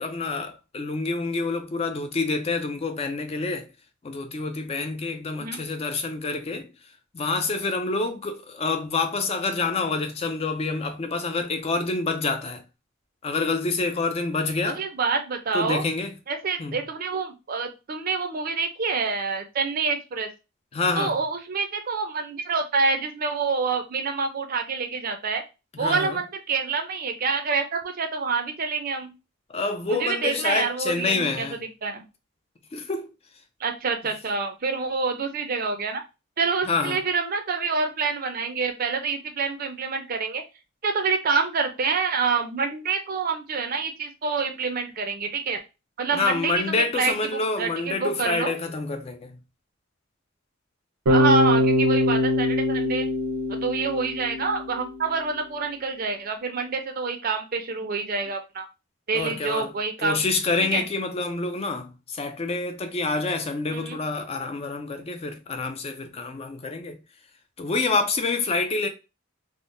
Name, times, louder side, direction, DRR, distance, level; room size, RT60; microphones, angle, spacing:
voice 1, 0.0-3.7 4.0-6.7 7.1-12.6 13.2-14.8 15.5-16.1 16.6-16.8 20.7-21.1 25.7-26.2 29.5-31.6 32.7-33.1 36.7-37.0 46.1-49.4 59.1-59.7 60.0-67.0 67.6-68.9, left 3 dB, 30° left, 0.3 m, -27 dB
voice 2, 14.8-15.8 16.3-20.3 21.0-25.4 25.8-29.1 29.9-32.0 33.6-36.0 36.4-40.4 40.8-45.6 46.0-48.5 51.1-53.1 53.6-58.7 59.1-60.3 60.6-60.8 63.7-64.0, right 4 dB, 45° right, 0.5 m, -27 dB
Bass guitar, 51.1-55.1, left 1 dB, 80° right, 0.7 m, -23 dB
3.5 x 2.0 x 2.5 m
head